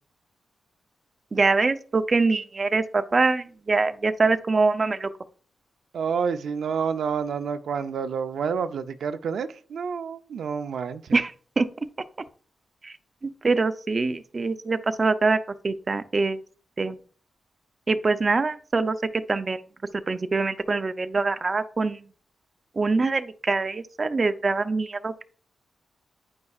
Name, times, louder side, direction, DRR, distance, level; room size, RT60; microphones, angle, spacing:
voice 1, 1.3-5.1 11.1-11.3 11.6-11.7 12.8-12.9 13.2-15.4 15.6-16.4 16.8-17.0 17.9-19.6 20.1-22.0 22.8-25.2, right 3 dB, 35° right, 0.5 m, -24 dB
voice 2, 5.9-11.2, right 6 dB, 80° right, 0.5 m, -29 dB
9.4 x 5.3 x 2.4 m
cardioid pair, 90°, 0 cm